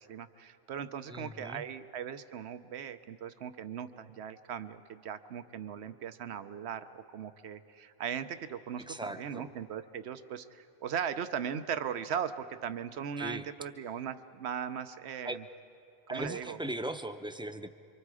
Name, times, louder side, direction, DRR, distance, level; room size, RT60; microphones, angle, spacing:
voice 1, 0.1-15.4 16.1-16.6, right 8 dB, 90° right, 11 dB, 1.0 m, -38 dB
voice 2, 1.1-1.6 8.9-9.5 13.2-13.4 15.2-15.4 16.1-17.7, right 1 dB, 5° right, 8 dB, 0.5 m, -38 dB
28.5 x 24.5 x 4.8 m, 2.7 s
omnidirectional pair, 1.1 m